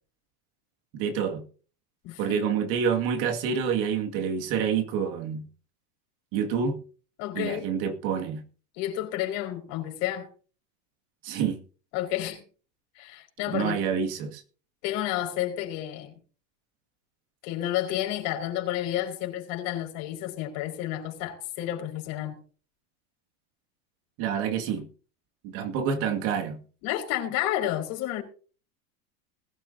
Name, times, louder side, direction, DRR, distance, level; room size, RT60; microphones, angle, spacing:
voice 1, 0.9-1.4 2.2-5.5 6.3-6.8 7.3-8.4 11.2-11.6 13.5-14.4 24.2-24.9 25.4-26.6, right 7 dB, 50° right, 2.2 m, -27 dB
voice 2, 2.0-2.4 7.2-7.7 8.7-10.3 11.9-12.4 13.0-13.8 14.8-16.2 17.4-22.4 26.8-28.2, left 13 dB, 55° left, 5.0 m, -30 dB
20.5 x 12.5 x 2.8 m
supercardioid pair, 150°, 45 cm